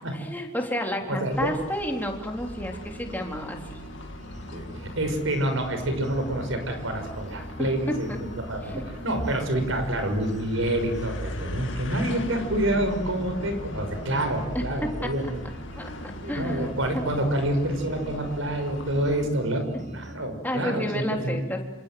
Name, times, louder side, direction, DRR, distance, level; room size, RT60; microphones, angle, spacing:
voice 1, 0.1-3.8 7.6-7.7 8.7-8.9 14.5-14.6 15.7-15.9 16.3-17.0 19.7-19.9 20.4-21.6, equal, 10° left, 1 dB, 3.7 m, -31 dB
voice 2, 1.1-1.5 4.5-15.4 16.2-19.7 19.9-21.5, right 1 dB, 70° right, 7 dB, 6.3 m, -27 dB
sound 1, 1.3-19.2, left 1 dB, 60° left, 2.4 m, -39 dB
sound 2, 2.3-20.2, right 1 dB, 35° right, 2.3 m, -44 dB
28.0 x 27.0 x 7.9 m, 0.97 s
head